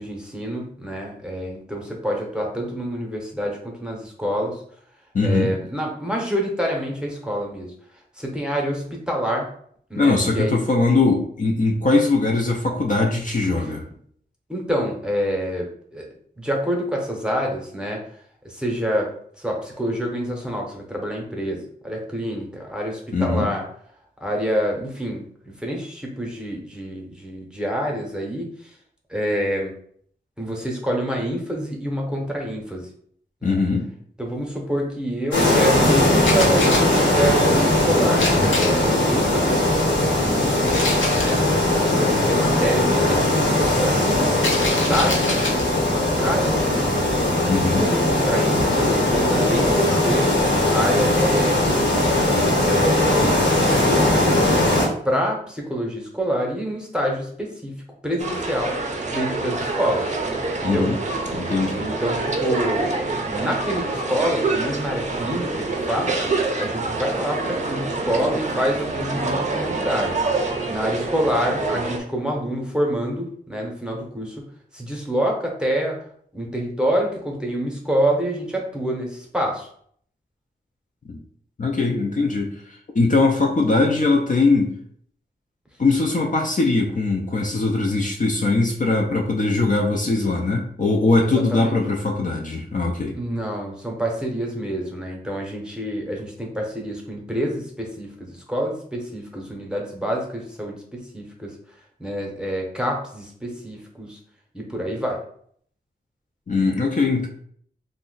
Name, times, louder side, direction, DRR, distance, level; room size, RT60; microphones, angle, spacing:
voice 1, 0.0-4.6 5.2-7.7 8.2-9.5 9.9-10.7 13.6-13.7 14.5-16.1 16.4-18.0 18.4-23.7 24.2-28.7 29.1-29.7 30.4-32.9 33.4-33.6 34.2-40.7 41.1-41.4 41.8-47.1 47.6-50.3 50.7-51.6 52.7-58.8 59.1-60.1 60.6-60.9 61.8-63.0 63.3-70.2 70.7-74.5 74.7-76.0 76.3-79.7 91.2-91.8 93.1-101.5 102.0-104.2 104.5-105.2, equal, 5° right, -1 dB, 0.8 m, -27 dB
voice 2, 5.1-5.5 10.0-13.8 23.1-23.5 33.4-33.9 47.4-47.9 60.6-61.0 61.3-61.8 81.1-81.2 81.6-82.6 82.9-84.8 85.8-93.2 106.5-107.3, left 3 dB, 40° left, 0 dB, 0.5 m, -21 dB
sound 1, 35.3-54.9, left 1 dB, 70° left, 1.1 m, -19 dB
sound 2, 36.1-37.0 38.1-38.9 40.7-41.4 44.3-45.7, left 2 dB, 90° left, 0.7 m, -26 dB
sound 3, 58.2-72.0, right 3 dB, 40° right, 0.5 m, -26 dB
2.6 x 2.1 x 3.9 m, 0.62 s
wide cardioid pair, 80°, 19 cm